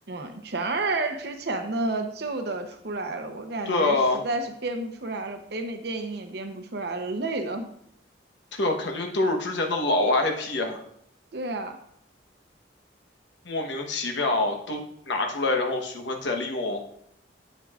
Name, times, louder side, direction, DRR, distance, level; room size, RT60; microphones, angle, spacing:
voice 1, 0.1-4.0 4.2-7.7 11.3-11.8, right 2 dB, 60° right, 6 dB, 0.8 m, -30 dB
voice 2, 3.7-4.2 8.5-10.8 13.4-16.8, left 2 dB, 80° left, 3 dB, 1.1 m, -26 dB
10.0 x 7.6 x 2.4 m, 0.70 s
head